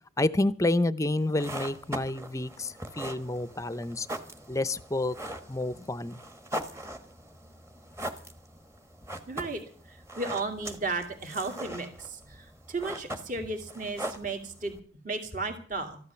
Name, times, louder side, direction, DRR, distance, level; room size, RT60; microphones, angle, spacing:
voice 1, 0.2-4.1 4.5-5.2 5.5-6.2, left 2 dB, 15° left, 17 dB, 0.6 m, -29 dB
sound 1, 1.2-14.8, right 1 dB, 15° right, 1.3 m, -41 dB
voice 2, 9.3-14.7 15.0-16.0, right 3 dB, 45° right, 5 dB, 2.4 m, -34 dB
14.0 x 11.5 x 7.0 m, 0.43 s
head